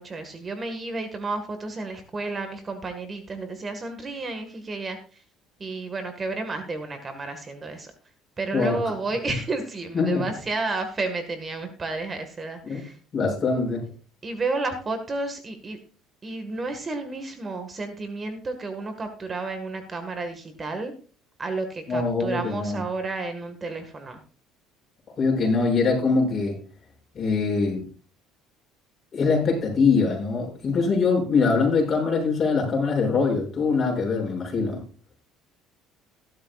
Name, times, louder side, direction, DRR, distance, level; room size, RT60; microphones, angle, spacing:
voice 1, 0.0-5.2 5.6-7.9 8.4-13.0 14.2-15.8 16.2-20.9 21.4-24.2, right 3 dB, 25° right, 7 dB, 1.7 m, -31 dB
voice 2, 13.1-13.8 21.9-22.8 25.2-26.5 27.1-27.8 29.1-34.8, left 4 dB, 35° left, -1 dB, 6.6 m, -23 dB
15.5 x 12.5 x 2.4 m, 0.39 s
cardioid pair, 120°, 0 cm